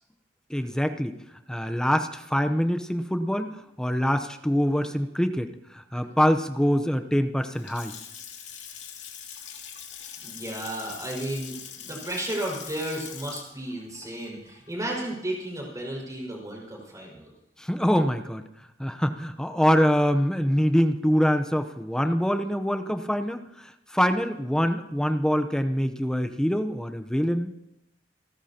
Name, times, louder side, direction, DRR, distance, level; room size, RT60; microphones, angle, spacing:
voice 1, 0.5-1.2 1.5-3.5 3.8-7.9 17.6-18.4 18.8-23.4 23.9-27.5, equal, 5° left, 7 dB, 0.8 m, -24 dB
Water tap faucet / Sink (filling or washing) / Splash splatter, 7.4-15.5, left 8 dB, 80° left, 2.6 m, -43 dB
voice 2, 10.2-17.3, right 1 dB, 20° right, -2 dB, 5.5 m, -33 dB
28.5 x 13.0 x 2.9 m, 0.85 s
head